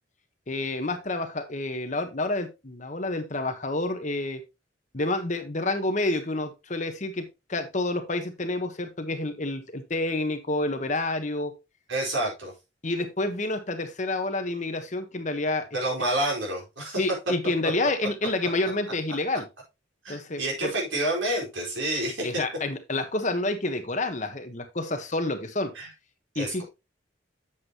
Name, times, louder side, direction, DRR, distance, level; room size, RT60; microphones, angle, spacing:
voice 1, 0.5-4.4 4.9-11.5 12.8-15.7 17.0-19.5 20.1-20.7 22.2-25.7 26.3-26.6, left 2 dB, 40° left, 1.2 m, -29 dB
voice 2, 11.9-12.5 15.7-17.0 20.0-22.3 25.7-25.9 26.3-26.6, right 1 dB, 80° right, 4.5 m, -28 dB
8.2 x 7.3 x 2.9 m
head